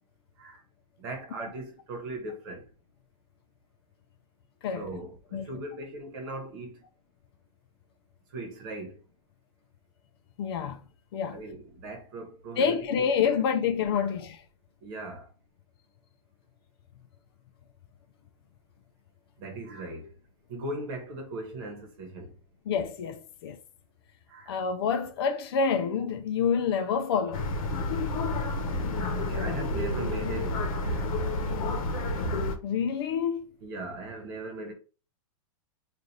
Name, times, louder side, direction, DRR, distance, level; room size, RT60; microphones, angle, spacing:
voice 1, 1.0-2.6 4.7-6.8 8.3-9.0 11.3-13.3 14.0-14.1 14.8-15.2 19.4-20.1 20.5-22.3 24.3-24.5 29.1-31.1 33.6-34.7, right 2 dB, 40° right, 1.1 m, -39 dB
voice 2, 10.4-10.8 11.1-11.4 12.6-14.4 22.7-23.6 24.5-27.4 32.6-33.5, left 6 dB, 45° left, 0.5 m, -27 dB
sound 1, 27.3-32.6, left 2 dB, 75° left, 0.9 m, -29 dB
3.1 x 2.5 x 3.9 m
supercardioid pair, 170°, 18 cm